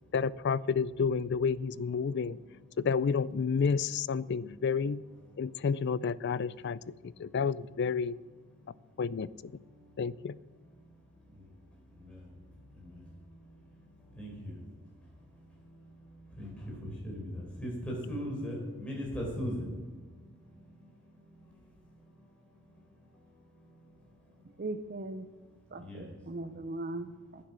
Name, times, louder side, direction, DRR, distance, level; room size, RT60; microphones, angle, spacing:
voice 1, 0.1-2.4 2.8-5.0 5.4-8.2 9.0-9.5 10.0-10.4, left 5 dB, 50° left, 18 dB, 0.3 m, -30 dB
voice 2, 2.0-2.8 4.3-5.7 6.3-7.5 8.3-9.1 9.4-24.6 25.2-26.4 26.9-27.0, equal, 5° left, -3 dB, 4.2 m, -44 dB
voice 3, 24.6-25.3 25.7-27.4, right 2 dB, 40° right, 8 dB, 0.6 m, -39 dB
11.0 x 9.5 x 5.9 m, 1.4 s
head